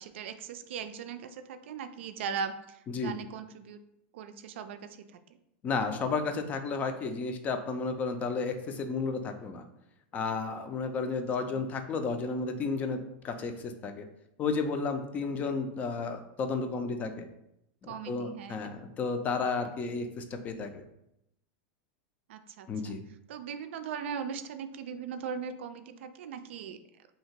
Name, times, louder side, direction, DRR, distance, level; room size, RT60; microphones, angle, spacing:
voice 1, 0.0-3.8 4.1-5.2 11.4-11.6 15.4-15.6 17.9-18.8 22.3-23.0 23.3-26.8, right 6 dB, 80° right, 9 dB, 0.4 m, -39 dB
voice 2, 5.6-9.6 10.1-13.0 13.2-14.1 14.4-17.2 17.8-20.8 22.7-23.0, left 4 dB, 25° left, 7 dB, 0.4 m, -32 dB
2.8 x 2.8 x 4.4 m, 0.81 s
supercardioid pair, 150°, 6 cm